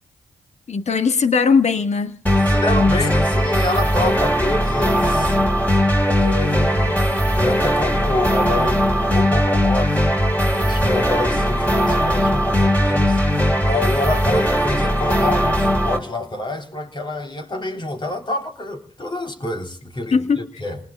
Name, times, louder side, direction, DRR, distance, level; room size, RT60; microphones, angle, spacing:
voice 1, 0.7-2.2 2.8-3.1 20.1-20.4, left 5 dB, 60° left, 1.7 m, -19 dB
sound 1, 2.3-16.0, equal, 10° left, 5.0 m, -19 dB
voice 2, 2.5-5.4 6.0-10.0 10.5-13.2 13.6-20.8, left 2 dB, 35° left, 3.7 m, -27 dB
29.5 x 19.5 x 2.4 m
supercardioid pair, 50°, 13 cm